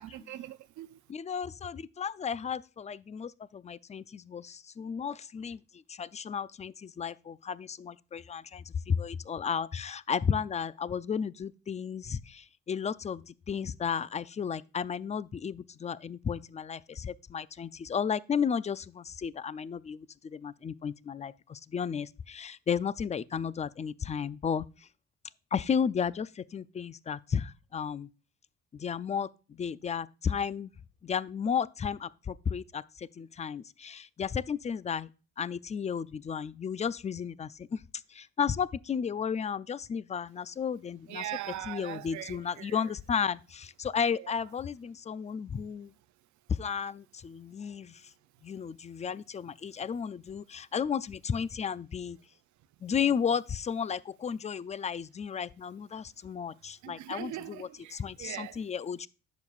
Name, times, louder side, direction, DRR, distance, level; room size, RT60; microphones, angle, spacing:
voice 1, 0.0-1.0 41.1-42.9 44.1-44.3 56.8-58.6, right 14 dB, 70° right, 0.5 m, -41 dB
voice 2, 1.1-5.6 5.9-24.9 25.5-28.1 28.7-30.7 31.0-35.1 35.4-37.8 38.1-41.3 41.7-45.9 46.5-48.1 48.4-52.2 52.8-59.1, left 7 dB, 25° left, 0.4 m, -33 dB
10.5 x 7.1 x 2.4 m
cardioid pair, 90°, 30 cm